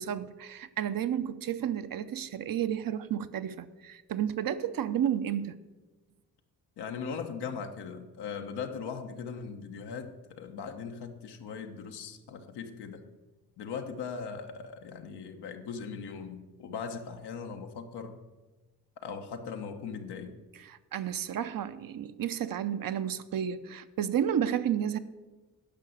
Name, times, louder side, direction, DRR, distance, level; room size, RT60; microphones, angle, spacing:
voice 1, 0.0-5.6 20.7-25.0, right 9 dB, 60° right, 12 dB, 0.7 m, -31 dB
voice 2, 6.8-13.0 13.6-18.2 19.0-20.3, left 6 dB, 90° left, 4 dB, 1.1 m, -39 dB
10.5 x 5.8 x 7.9 m, 1.2 s
cardioid pair, 65°, 39 cm